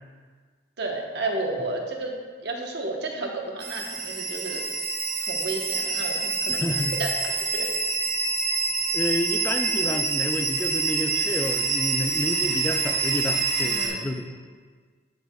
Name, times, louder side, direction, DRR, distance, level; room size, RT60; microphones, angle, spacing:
voice 1, 0.8-4.6 5.2-7.7 13.6-14.2, right 2 dB, 65° right, 1 dB, 1.0 m, -32 dB
sound 1, 3.6-13.9, right 4 dB, 40° right, 1.4 m, -26 dB
voice 2, 6.5-7.0 8.9-14.2, left 1 dB, 10° left, 5 dB, 0.3 m, -29 dB
11.5 x 6.2 x 2.3 m, 1.5 s
head